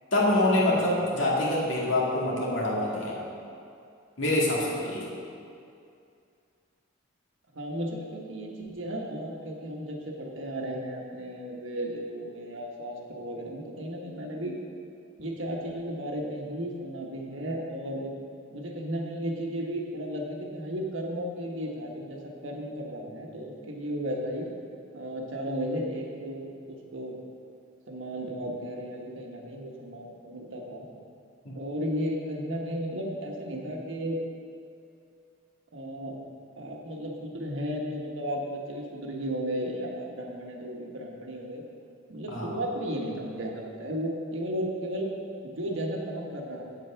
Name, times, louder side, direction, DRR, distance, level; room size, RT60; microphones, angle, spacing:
voice 1, 0.1-3.2 4.2-5.1 31.5-31.6 42.3-42.5, left 1 dB, 65° left, -4 dB, 2.2 m, -25 dB
voice 2, 7.5-14.5 15.2-18.1 18.5-24.5 24.9-27.2 27.9-30.8 31.5-34.2 35.7-36.2 36.6-41.6 42.1-45.1 45.4-46.6, equal, 70° right, 0 dB, 1.4 m, -34 dB
8.1 x 7.8 x 5.8 m, 2.5 s
head